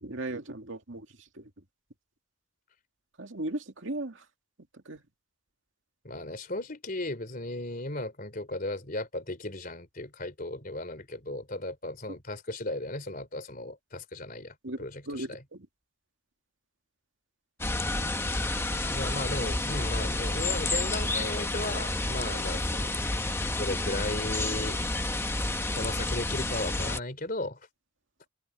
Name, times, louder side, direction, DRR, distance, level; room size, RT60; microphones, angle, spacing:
voice 1, 0.0-1.5 3.2-4.2 4.9-5.0 14.6-15.7, right 1 dB, 70° right, 2.3 m, -37 dB
voice 2, 6.0-15.4 18.9-22.9 23.6-24.8 25.7-27.6, left 2 dB, 45° left, 3.6 m, -36 dB
sound 1, 17.6-27.0, left 2 dB, 10° left, 0.9 m, -30 dB
head